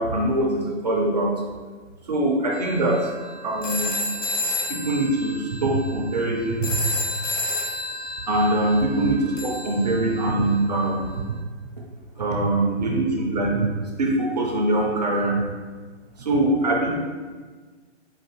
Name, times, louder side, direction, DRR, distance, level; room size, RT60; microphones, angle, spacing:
voice 1, 0.0-1.4 2.1-3.1 3.4-3.9 4.7-6.7 8.3-11.1 12.2-13.7 14.0-15.4 16.2-16.9, right 1 dB, 35° right, -1 dB, 0.5 m, -23 dB
sound 1, 2.5-10.6, left 1 dB, 85° left, 0.9 m, -31 dB
4.5 x 2.5 x 2.9 m, 1.4 s
figure-of-eight pair, 135°, 36 cm